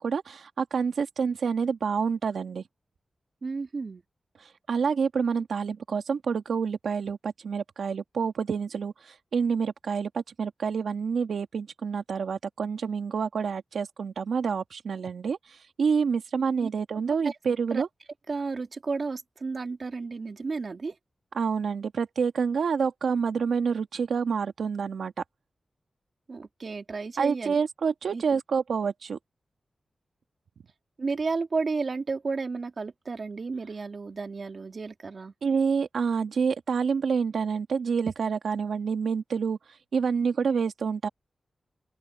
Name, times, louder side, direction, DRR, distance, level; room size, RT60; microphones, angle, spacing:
voice 1, 0.0-2.6 4.7-17.9 21.3-25.1 27.2-29.2 35.4-39.6 39.9-41.1, right 6 dB, 85° right, 1.8 m, -28 dB
voice 2, 3.4-4.0 16.6-16.7 17.2-17.3 17.7-17.8 18.3-20.9 26.3-27.5 28.1-28.4 31.0-35.3, right 4 dB, 45° right, 3.0 m, -32 dB
open air
wide cardioid pair, 165°, 0 cm